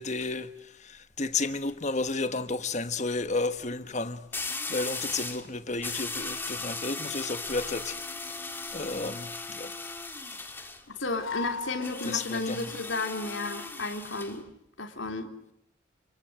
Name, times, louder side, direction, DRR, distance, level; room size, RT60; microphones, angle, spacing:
voice 1, 0.0-8.0 8.7-9.7 12.0-12.7, left 3 dB, 35° left, 1.2 m, -32 dB
sound 1, 1.2-1.5 4.3-5.5 5.8-10.8 11.8-14.4, left 3 dB, 10° left, 2.1 m, -37 dB
sound 2, 7.9-9.0 11.2-12.6, left 5 dB, 85° left, 2.7 m, -39 dB
voice 2, 11.0-14.5 14.8-15.3, left 3 dB, 65° left, 3.3 m, -33 dB
30.0 x 23.0 x 7.9 m
head